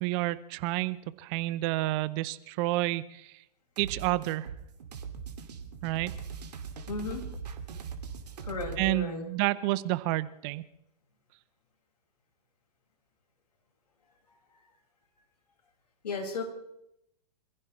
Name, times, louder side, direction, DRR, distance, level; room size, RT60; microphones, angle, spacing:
voice 1, 0.0-3.3 3.8-4.5 5.8-6.1 8.8-10.6, right 18 dB, 40° right, 17 dB, 0.8 m, -30 dB
sound 1, 3.8-8.9, right 6 dB, 70° right, 2.6 m, -40 dB
voice 2, 6.9-7.2 8.4-9.2 16.0-16.4, left 4 dB, 75° left, 0 dB, 5.9 m, -34 dB
27.5 x 15.5 x 3.2 m, 0.79 s
hypercardioid pair, 110°, 21 cm